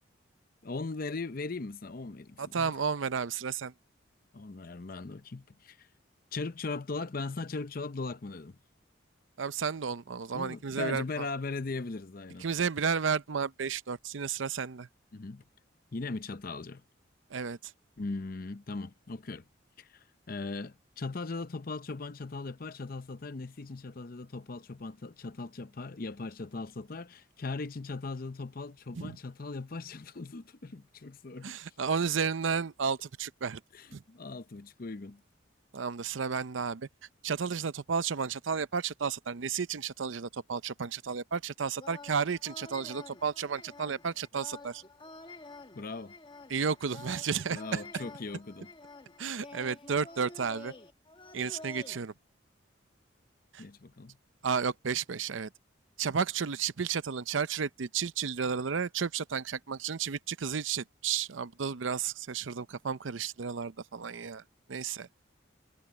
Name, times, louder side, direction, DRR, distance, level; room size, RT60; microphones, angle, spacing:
voice 1, 0.6-2.7 4.3-5.9 6.3-8.6 10.3-12.5 15.1-15.4 15.9-16.8 18.0-19.5 19.8-31.6 33.7-35.2 45.7-46.1 47.5-48.7 53.6-54.2, left 3 dB, 45° left, 0.7 m, -39 dB
voice 2, 2.4-3.7 9.4-11.3 12.4-14.9 17.3-17.7 29.0-29.2 31.4-33.6 33.9-34.0 35.7-36.9 37.2-44.8 46.5-47.8 49.2-50.7 51.3-52.1 53.5-53.6 54.4-55.5 56.0-64.4 64.7-65.1, right 6 dB, 75° right, 0.6 m, -32 dB
sound 1, 41.8-52.0, left 3 dB, 25° left, 1.2 m, -49 dB
head